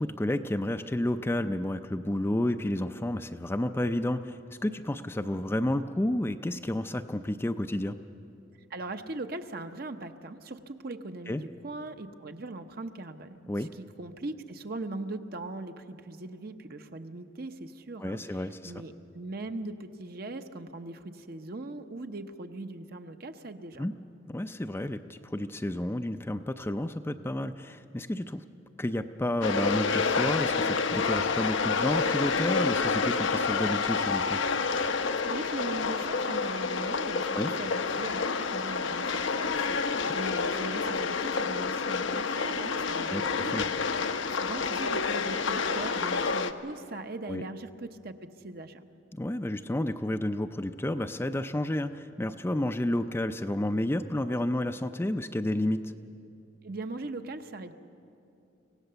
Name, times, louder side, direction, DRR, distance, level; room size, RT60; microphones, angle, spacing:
voice 1, 0.0-8.0 11.3-11.4 13.5-13.7 18.0-18.7 23.8-23.9 24.3-28.4 28.8-34.4 37.3-37.5 43.1-43.7 47.3-47.4 49.1-55.8, left 1 dB, 10° left, 8 dB, 0.4 m, -31 dB
voice 2, 8.7-23.8 35.2-43.7 44.1-48.2 48.4-48.8 56.6-57.7, right 2 dB, 50° right, 7 dB, 0.9 m, -40 dB
sound 1, 29.4-46.5, left 4 dB, 75° left, 0.8 m, -29 dB
24.5 x 17.0 x 6.8 m, 2.8 s
head